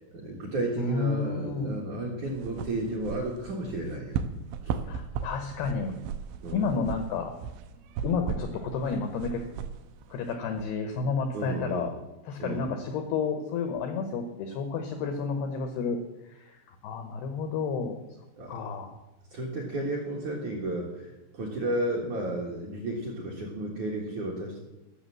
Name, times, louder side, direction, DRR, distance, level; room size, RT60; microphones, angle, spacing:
voice 1, 0.1-4.2 4.6-4.8 6.4-6.7 11.3-11.9 12.4-12.7 18.4-18.6 19.3-24.6, right 1 dB, 60° right, 0 dB, 2.0 m, -33 dB
voice 2, 0.8-1.8 4.8-6.0 6.5-7.4 8.0-9.4 10.1-11.9 12.2-18.0 18.5-19.0, left 5 dB, 80° left, 6 dB, 2.3 m, -31 dB
sound 1, 2.2-10.7, right 7 dB, 85° right, 2.9 m, -37 dB
13.5 x 6.7 x 7.5 m, 1.0 s
omnidirectional pair, 5.8 m